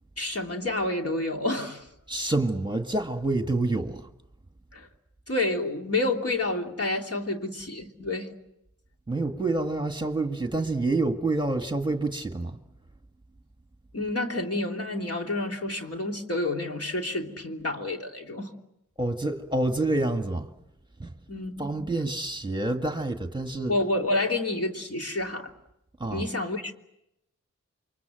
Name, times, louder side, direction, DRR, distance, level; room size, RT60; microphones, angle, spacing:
voice 1, 0.2-1.9 4.7-4.9 5.3-8.4 13.9-18.5 21.3-21.7 23.7-25.5 26.1-26.7, left 2 dB, 50° left, 3.1 m, -29 dB
voice 2, 2.1-4.1 9.1-12.6 19.0-20.5 21.0-21.1 21.6-23.7 26.0-26.2, right 2 dB, 15° right, 1.8 m, -27 dB
28.5 x 24.5 x 7.8 m
wide cardioid pair, 65°, 30 cm